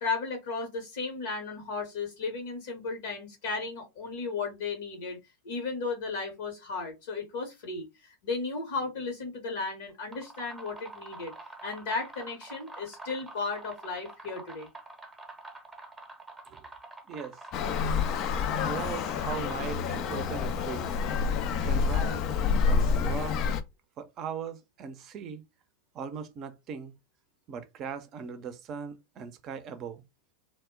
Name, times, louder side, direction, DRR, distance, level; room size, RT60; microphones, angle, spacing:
voice 1, 0.0-5.2 5.4-11.3 11.6-14.7, left 4 dB, 65° left, 0.9 m, -35 dB
sound 1, 9.9-20.2, right 2 dB, 10° right, 0.8 m, -47 dB
voice 2, 17.1-17.4 18.6-20.9 21.6-22.3 22.6-23.4 24.0-25.4 25.9-26.9 27.5-30.0, right 7 dB, 40° right, 0.5 m, -39 dB
Traffic noise roadway noise, 17.5-23.6, left 5 dB, 45° left, 0.4 m, -28 dB
2.1 x 2.0 x 3.6 m
figure-of-eight pair, 90°, 0 cm